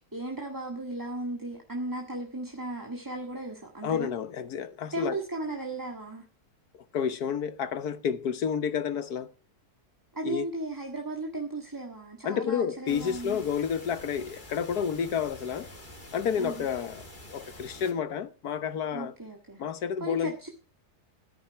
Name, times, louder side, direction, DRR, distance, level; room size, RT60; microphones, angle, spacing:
voice 1, 0.1-4.1 4.9-6.3 10.1-13.4 16.4-16.7 18.9-19.6 20.0-20.5, right 2 dB, 15° right, 1.6 m, -36 dB
voice 2, 3.8-5.2 6.7-9.3 10.2-10.5 12.2-15.7 16.1-19.1 19.6-20.3, left 7 dB, 75° left, 1.6 m, -30 dB
sound 1, 12.9-17.9, left 1 dB, 30° left, 3.0 m, -47 dB
16.0 x 10.5 x 4.7 m
omnidirectional pair, 1.7 m